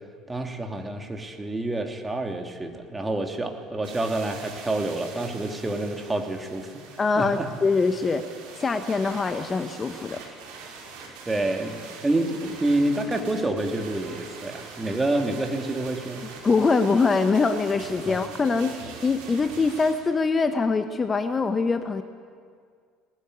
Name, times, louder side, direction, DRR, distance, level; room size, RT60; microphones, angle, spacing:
voice 1, 0.3-6.8 7.1-7.5 11.3-16.3 18.1-18.2, right 2 dB, 15° right, 3 dB, 3.1 m, -28 dB
sound 1, 3.8-19.9, right 4 dB, 65° right, 5.4 m, -43 dB
voice 2, 7.0-8.2 8.5-10.2 16.4-18.7 19.0-22.0, left 4 dB, 25° left, 9 dB, 1.2 m, -23 dB
20.0 x 19.5 x 9.8 m, 2.1 s
figure-of-eight pair, 60°, 0 cm